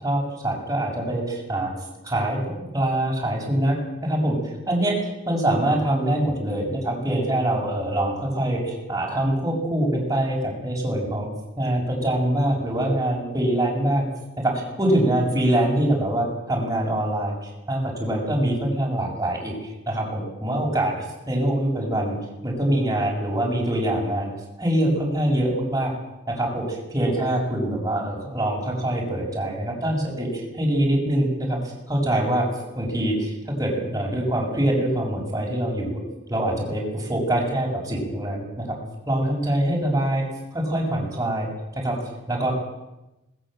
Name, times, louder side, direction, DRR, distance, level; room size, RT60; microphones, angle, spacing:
voice 1, 0.0-1.7 2.0-3.8 4.0-11.3 11.6-14.0 14.4-19.5 19.9-22.2 22.4-24.3 24.6-25.9 26.3-32.5 32.7-36.0 36.3-38.8 39.1-40.2 40.5-42.5, right 1 dB, 20° right, -3 dB, 6.5 m, -24 dB
20.5 x 20.0 x 7.9 m, 0.97 s
head